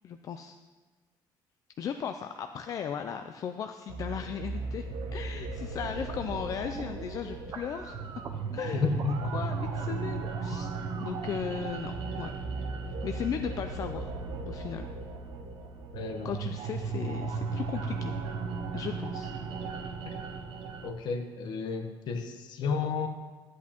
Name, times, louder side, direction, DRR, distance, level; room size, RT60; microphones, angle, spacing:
voice 1, 0.0-0.5 1.8-4.9 5.1-8.0 8.5-8.8 9.3-10.7 11.0-12.3 13.0-14.1 14.5-14.9 16.2-18.1 18.7-19.3, left 8 dB, 45° left, 7 dB, 0.3 m, -36 dB
sound 1, 3.9-20.9, right 4 dB, 75° right, 0.8 m, -36 dB
sound 2, 6.6-11.6, right 5 dB, 40° right, 0.6 m, -45 dB
voice 2, 8.7-9.3 15.9-16.5 20.8-23.1, left 5 dB, 60° left, 6 dB, 0.9 m, -32 dB
12.0 x 8.3 x 2.9 m, 1.3 s
cardioid pair, 155°, 9 cm